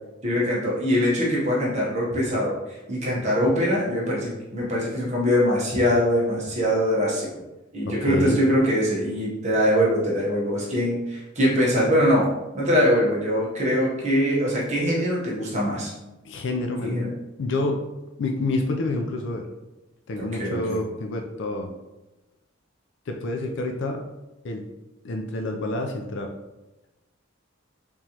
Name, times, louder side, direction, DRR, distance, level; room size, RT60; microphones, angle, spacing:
voice 1, 0.2-7.3 7.7-12.3 12.5-15.9 16.8-17.1 20.1-20.8, equal, 35° right, -5 dB, 0.9 m, -23 dB
voice 2, 7.8-8.4 16.2-17.0 17.4-17.8 18.2-19.5 20.1-21.7 23.1-24.0 24.4-24.7 25.0-26.3, left 2 dB, 60° left, 3 dB, 0.4 m, -28 dB
3.6 x 3.0 x 2.8 m, 1.0 s
head